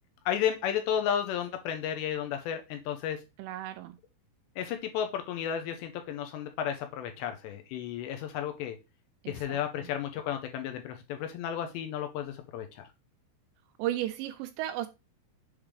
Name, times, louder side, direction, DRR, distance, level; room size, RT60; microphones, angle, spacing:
voice 1, 0.3-3.2 4.6-8.8 9.3-12.9, left 9 dB, 80° left, 2.7 m, -33 dB
voice 2, 3.4-4.0 9.2-9.6 13.8-14.9, right 13 dB, 80° right, 2.7 m, -34 dB
7.4 x 3.4 x 4.9 m
omnidirectional pair, 5.4 m